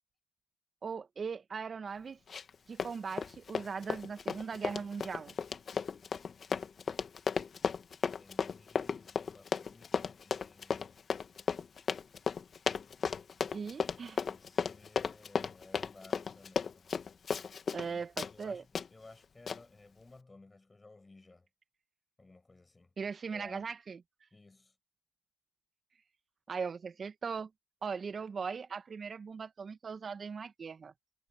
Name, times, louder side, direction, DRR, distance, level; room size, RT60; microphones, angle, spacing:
voice 1, 0.8-2.2 2.7-5.3 13.5-14.2 17.7-18.6 23.0-24.0 26.5-27.5 27.8-30.9, right 5 dB, 40° right, 1.3 m, -39 dB
Run, 2.3-2.5 2.8-17.9 18.2-18.3 18.7-18.9 19.5-19.6, left 6 dB, 45° left, 1.9 m, -34 dB
voice 2, 8.2-11.0 13.4-17.0 17.8-21.5 22.2-22.9 23.3-23.7 24.3-24.8, left 3 dB, 20° left, 7.9 m, -57 dB
hypercardioid pair, 60°, 0 cm